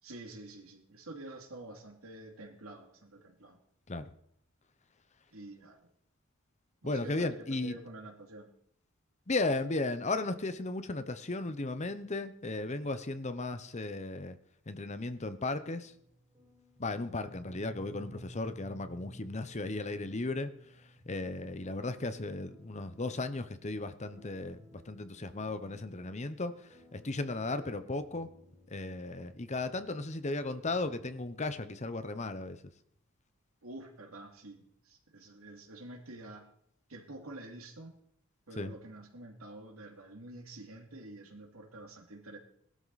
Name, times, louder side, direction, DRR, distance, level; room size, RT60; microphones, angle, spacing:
voice 1, 0.0-3.6 5.3-5.9 6.8-8.5 33.6-36.5 36.9-38.0 38.5-42.4, right 2 dB, 90° right, 3 dB, 2.6 m, -48 dB
voice 2, 6.8-7.8 9.3-14.4 14.7-15.9 16.8-20.5 20.8-28.3 28.7-32.6 38.6-38.7, left 2 dB, 35° left, 11 dB, 0.8 m, -35 dB
sound 1, 15.6-31.5, right 1 dB, 15° right, 7.9 m, -56 dB
19.0 x 12.5 x 4.1 m, 0.69 s
head